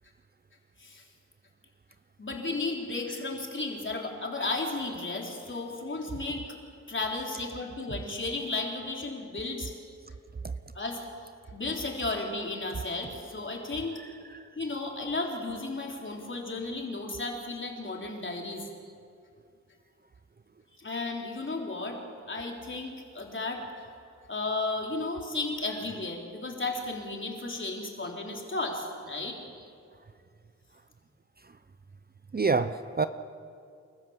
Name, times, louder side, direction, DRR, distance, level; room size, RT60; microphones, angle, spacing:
voice 1, 2.2-6.4 6.9-9.7 10.7-11.0 11.5-13.9 14.6-18.6 20.8-22.0 22.3-23.6 24.3-29.4, left 3 dB, 40° left, 0 dB, 4.0 m, -34 dB
voice 2, 14.0-14.4 25.7-25.8 32.3-33.1, right 4 dB, 30° right, 12 dB, 0.7 m, -29 dB
29.0 x 13.5 x 7.4 m, 2.4 s
cardioid pair, 70°, 30 cm